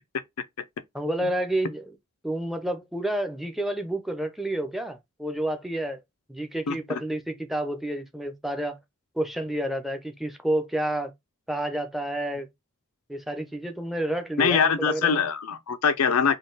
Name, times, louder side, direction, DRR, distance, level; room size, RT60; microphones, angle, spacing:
voice 1, 0.9-1.8 2.2-6.0 6.3-8.8 9.2-11.1 11.5-12.5 13.1-15.2, right 1 dB, ahead, 0.5 m, -29 dB
voice 2, 6.7-7.0 14.4-16.4, left 6 dB, 90° left, 0.5 m, -23 dB
3.8 x 2.3 x 3.8 m
head